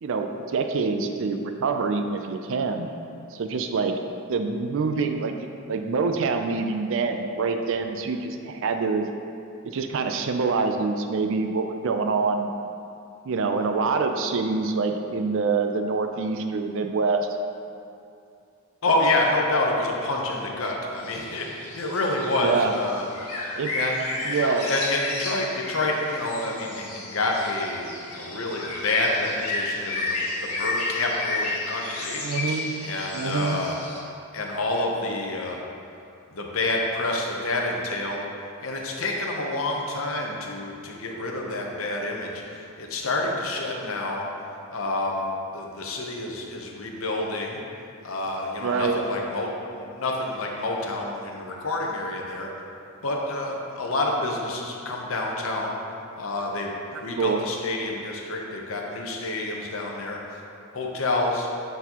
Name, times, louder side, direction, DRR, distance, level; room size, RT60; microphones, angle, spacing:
voice 1, 0.0-2.9 3.3-4.0 4.3-5.3 5.7-9.1 9.6-12.5 13.2-17.3 22.4-22.7 23.6-23.7 24.2-24.7 32.2-32.7 33.1-33.6 48.6-49.0 57.2-57.4, right 4 dB, 60° right, 6 dB, 0.4 m, -25 dB
voice 2, 18.8-23.1 23.7-32.2 32.8-33.8 34.3-35.6 36.3-38.2 38.6-44.2 44.7-47.6 48.0-52.5 53.0-55.8 56.2-56.7 57.0-60.4 60.7-61.5, left 2 dB, 65° left, -1 dB, 0.7 m, -28 dB
sound 1, 21.0-34.0, left 2 dB, 80° left, 1.5 m, -32 dB
8.1 x 4.0 x 2.9 m, 2.6 s
head